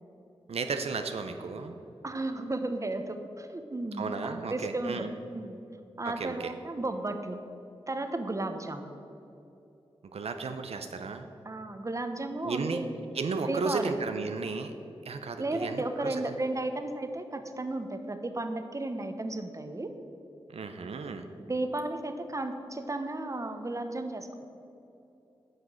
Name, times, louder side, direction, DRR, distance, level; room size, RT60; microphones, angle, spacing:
voice 1, 0.5-1.7 4.0-5.1 6.2-6.5 10.1-11.3 12.4-12.8 13.1-14.7 15.0-16.4 20.5-21.3, right 4 dB, 80° right, 6 dB, 0.6 m, -34 dB
voice 2, 2.0-5.6 6.0-7.4 7.9-8.8 11.4-13.0 13.4-13.9 15.4-19.9 21.4-24.3, right 2 dB, 30° right, 7 dB, 1.0 m, -34 dB
10.5 x 6.1 x 7.6 m, 2.8 s
wide cardioid pair, 65°, 10 cm